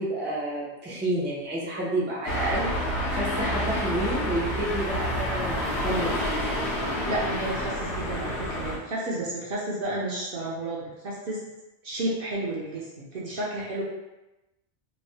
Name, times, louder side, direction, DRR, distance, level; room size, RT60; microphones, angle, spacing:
voice 1, 0.0-6.5, right 1 dB, 15° right, -6 dB, 0.4 m, -30 dB
sound 1, 2.3-8.8, equal, 70° left, 0.8 m, -29 dB
voice 2, 6.8-11.4 11.8-13.8, right 1 dB, 60° right, -6 dB, 0.7 m, -32 dB
3.1 x 2.0 x 2.7 m, 1.0 s
omnidirectional pair, 1.2 m